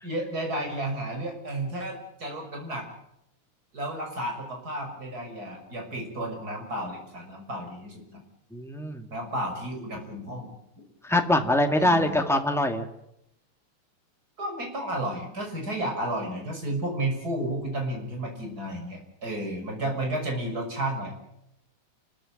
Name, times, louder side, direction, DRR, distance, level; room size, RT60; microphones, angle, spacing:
voice 1, 0.0-2.9 3.7-8.2 9.1-10.5 11.8-12.2 14.4-21.1, right 1 dB, 30° right, 2 dB, 6.6 m, -32 dB
voice 2, 8.5-9.1 11.0-12.9, left 1 dB, ahead, 5 dB, 1.4 m, -23 dB
29.5 x 14.0 x 8.9 m, 0.81 s
omnidirectional pair, 3.4 m